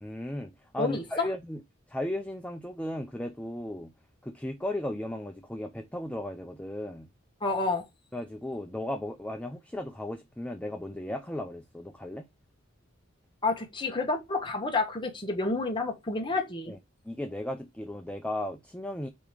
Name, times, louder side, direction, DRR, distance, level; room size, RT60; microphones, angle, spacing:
voice 1, 0.0-1.6 1.9-3.9 4.2-7.1 8.1-12.3 16.7-16.8 17.0-19.1, left 1 dB, 5° left, 0.5 m, -35 dB
voice 2, 0.8-1.3 7.4-7.8 13.4-16.7, left 3 dB, 25° left, 1.2 m, -29 dB
8.5 x 3.0 x 5.1 m
head